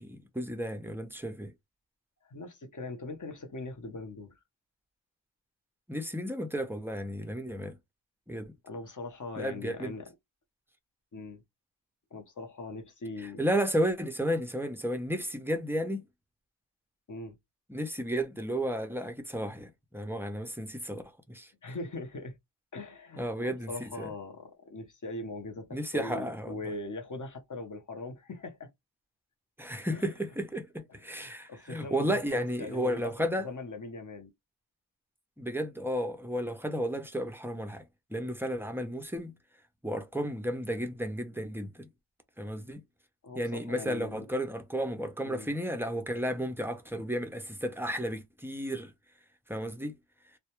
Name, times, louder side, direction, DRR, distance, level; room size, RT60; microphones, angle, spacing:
voice 1, 0.0-1.5 5.9-7.8 8.3-8.5 9.4-9.9 13.2-16.1 17.7-21.0 21.3-21.5 23.2-24.1 25.7-26.6 29.6-33.5 35.4-37.8 38.1-39.3 39.8-41.9 42.4-42.8 43.4-48.9 49.5-50.0, equal, 5° right, 0.4 m, -33 dB
voice 2, 2.2-4.3 8.6-10.1 11.1-11.4 12.1-13.4 17.1-17.4 21.6-22.3 22.7-28.7 29.9-30.1 31.1-33.1 33.4-34.3 43.2-44.3 45.2-45.5, left 2 dB, 40° left, 0.7 m, -41 dB
2.1 x 2.1 x 2.8 m
wide cardioid pair, 95°, 48 cm